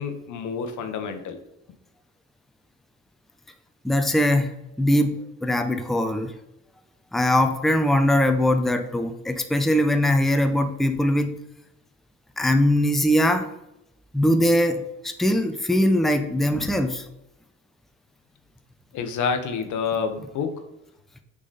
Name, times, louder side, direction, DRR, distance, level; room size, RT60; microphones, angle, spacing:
voice 1, 0.0-1.4 18.9-20.6, left 6 dB, 75° left, 7 dB, 0.9 m, -28 dB
voice 2, 3.8-4.5 4.8-6.3 7.1-11.4 12.4-13.5 14.1-17.0, left 1 dB, ahead, 7 dB, 0.6 m, -21 dB
6.2 x 3.9 x 4.0 m, 0.85 s
cardioid pair, 90°, 30 cm